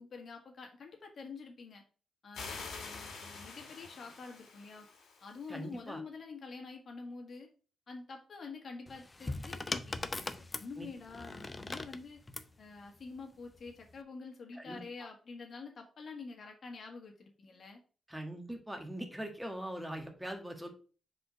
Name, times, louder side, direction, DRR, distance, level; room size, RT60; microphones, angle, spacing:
voice 1, 0.0-1.8 2.2-4.9 5.2-7.5 7.9-12.2 12.6-17.8, left 4 dB, 60° left, 2 dB, 1.6 m, -47 dB
sound 1, 2.3-5.6, left 4 dB, 90° left, 2.0 m, -47 dB
voice 2, 5.5-6.0 10.8-10.9 14.6-15.1 18.1-20.7, right 1 dB, 5° right, 4 dB, 1.4 m, -42 dB
sound 2, 8.9-12.5 13.6-14.0, left 2 dB, 25° left, 0.6 m, -40 dB
4.9 x 3.8 x 5.3 m, 0.37 s
cardioid pair, 80°, 0 cm